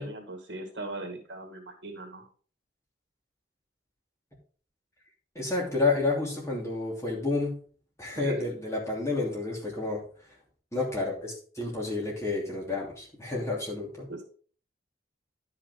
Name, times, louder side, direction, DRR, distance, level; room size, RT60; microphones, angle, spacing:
voice 1, 0.0-2.2 8.2-8.5 14.1-14.2, right 2 dB, 80° right, 3 dB, 2.0 m, -39 dB
voice 2, 5.3-7.6 8.0-10.0 10.7-14.1, left 3 dB, 15° left, -3 dB, 2.9 m, -30 dB
11.0 x 5.6 x 3.7 m, 0.43 s
head